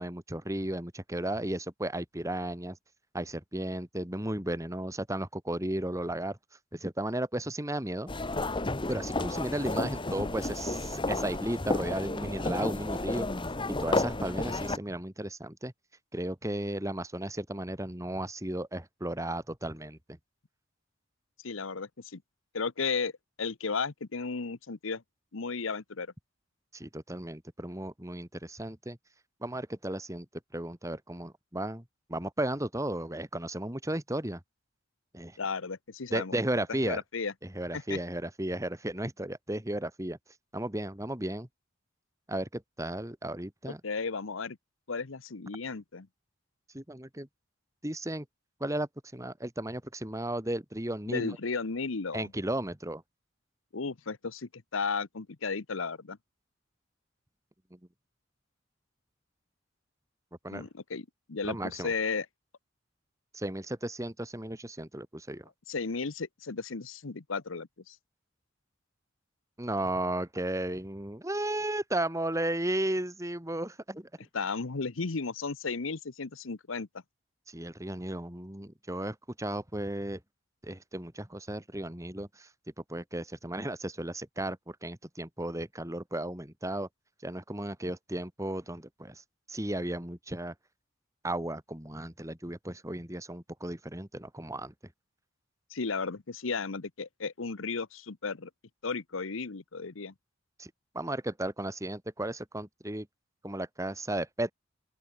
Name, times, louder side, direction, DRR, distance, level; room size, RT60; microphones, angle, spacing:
voice 1, 0.0-2.8 3.1-6.4 6.7-8.1 8.9-13.3 13.8-15.7 16.1-20.2 26.7-29.0 29.4-30.3 30.5-31.8 32.1-34.4 35.1-35.4 36.1-37.0 37.4-40.2 40.5-41.5 42.3-43.8 46.7-47.3 47.8-48.2 48.6-51.3 52.1-53.0 57.7-57.8 60.4-60.7 61.4-61.9 63.3-65.5 69.6-74.1 77.5-80.2 80.6-82.5 82.9-86.9 87.2-89.2 89.5-90.5 91.2-94.7 100.6-103.1 103.4-104.5, right 1 dB, 15° right, 2.6 m, -34 dB
sound 1, 8.1-14.8, left 2 dB, 25° left, 1.2 m, -32 dB
voice 2, 21.4-22.2 22.5-23.1 23.4-25.0 25.3-26.1 35.4-36.3 36.8-37.3 37.7-38.0 43.7-44.6 44.9-46.1 51.1-52.3 53.7-56.2 60.5-62.3 65.7-68.0 74.3-76.9 95.7-98.5 98.8-100.1, left 4 dB, 80° left, 1.0 m, -34 dB
open air
head